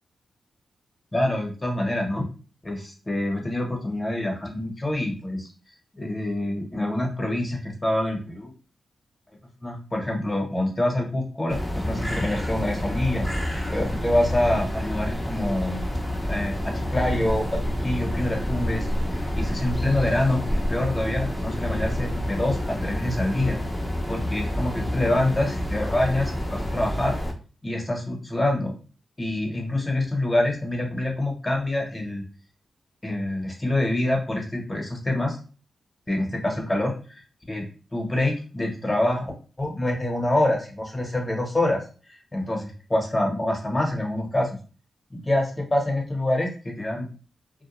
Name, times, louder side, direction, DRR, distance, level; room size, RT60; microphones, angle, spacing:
voice 1, 1.1-2.3 2.6-5.5 5.9-8.5 9.6-13.3 13.7-15.8 16.3-18.9 19.3-23.6 24.1-27.2 27.6-28.7 29.2-32.2 33.0-35.4 36.1-37.2 37.5-37.7 37.9-39.3 39.6-41.8 42.3-44.6 45.1-47.1, left 1 dB, 25° left, 2 dB, 0.9 m, -26 dB
sound 1, 11.5-27.3, equal, 10° left, 0.6 m, -28 dB
2.2 x 2.1 x 2.9 m, 0.37 s
cardioid pair, 55°, 0 cm